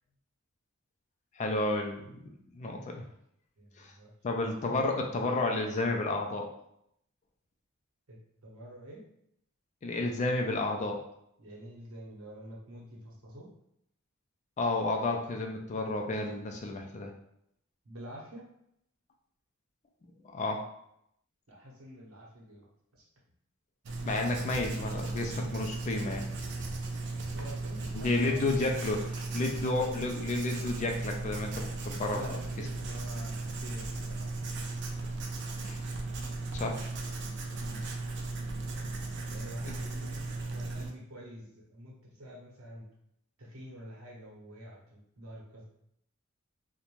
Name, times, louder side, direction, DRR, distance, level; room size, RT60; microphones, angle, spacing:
voice 1, 1.4-2.2 2.6-3.0 3.8-3.9 4.2-6.5 9.8-11.0 14.6-17.1 20.3-20.6 24.0-26.3 27.9-32.4 35.6-35.8 36.5-36.8 39.7-39.8 40.1-40.2, left 2 dB, 35° left, 2 dB, 0.3 m, -31 dB
voice 2, 3.6-4.5 8.1-9.0 11.4-13.5 17.8-18.4 21.5-22.7 22.9-23.0 27.1-28.4 32.1-34.3 37.6-37.9 39.3-40.2 40.5-42.8 43.4-45.6, equal, 75° right, -3 dB, 0.8 m, -47 dB
Writing, 23.8-40.9, right 3 dB, 55° right, 0.4 m, -36 dB
2.4 x 2.1 x 3.0 m, 0.75 s
head